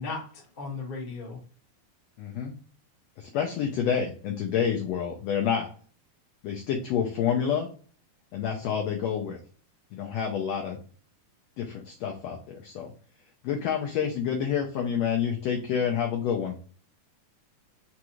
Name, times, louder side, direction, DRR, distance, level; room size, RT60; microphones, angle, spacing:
voice 1, 0.0-1.4, left 4 dB, 35° left, -5 dB, 0.8 m, -36 dB
voice 2, 2.2-2.5 3.2-5.7 6.4-7.7 8.3-9.4 9.9-10.8 11.6-12.9 13.4-16.6, left 8 dB, 80° left, 1 dB, 1.5 m, -28 dB
5.1 x 2.4 x 2.9 m, 0.42 s
omnidirectional pair, 3.7 m